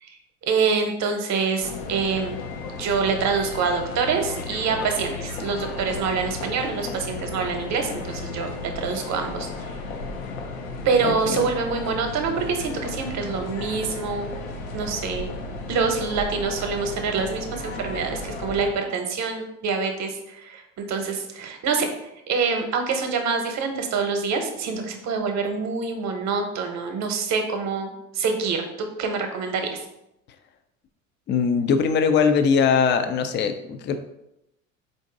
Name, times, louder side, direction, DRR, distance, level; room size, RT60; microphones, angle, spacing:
voice 1, 0.4-2.4 2.7-9.7 10.8-14.3 14.7-15.3 15.7-21.9 22.3-29.7, right 5 dB, 45° right, 5 dB, 0.9 m, -26 dB
sound 1, 1.6-18.7, left 3 dB, 80° left, 0.7 m, -34 dB
voice 2, 11.0-11.5 31.3-34.0, left 6 dB, 30° left, 8 dB, 0.4 m, -21 dB
4.4 x 2.7 x 3.8 m, 0.84 s
hypercardioid pair, 65°, 40 cm